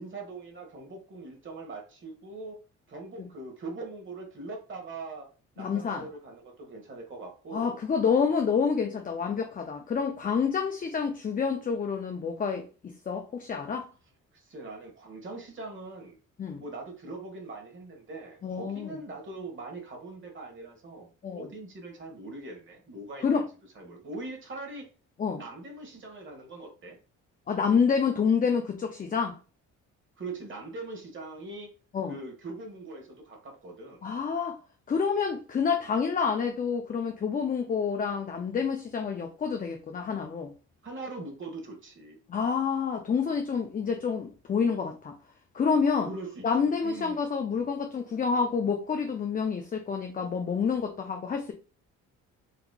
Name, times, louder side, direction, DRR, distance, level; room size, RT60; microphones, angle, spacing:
voice 1, 0.0-2.6 2.9-5.3 5.5-7.7 14.3-16.2 16.6-23.4 23.7-24.9 25.3-27.0 30.2-31.7 32.1-34.1 40.8-42.2 46.0-47.2, right 2 dB, 40° right, 1.3 m, -41 dB
voice 2, 5.6-6.1 7.5-13.9 16.4-16.6 18.4-18.9 21.2-21.5 23.2-23.4 25.2-25.4 27.5-29.4 31.9-32.1 34.0-34.6 34.9-40.5 42.3-45.2 45.5-46.1 46.4-51.5, left 6 dB, 30° left, 0.5 m, -28 dB
3.8 x 3.0 x 2.2 m
cardioid pair, 90°, 30 cm